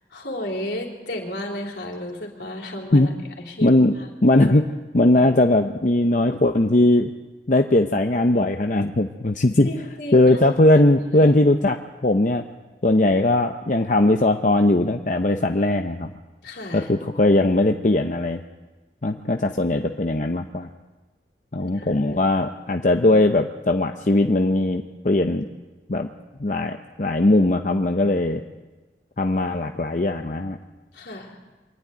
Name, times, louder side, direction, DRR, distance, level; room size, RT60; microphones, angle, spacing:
voice 1, 0.1-3.1 3.5-3.7 4.0-4.1 9.6-10.3 11.1-11.3 16.4-16.9 21.6-22.4 30.9-31.4, left 1 dB, 75° left, 0 dB, 3.7 m, -33 dB
voice 2, 3.6-3.9 4.2-7.1 7.5-9.7 10.1-12.4 12.8-16.1 16.7-18.4 19.0-20.7 21.5-25.5 25.9-26.1 26.4-28.4 29.2-30.6, left 2 dB, 45° left, 5 dB, 0.7 m, -19 dB
24.0 x 12.0 x 9.6 m, 1.2 s
head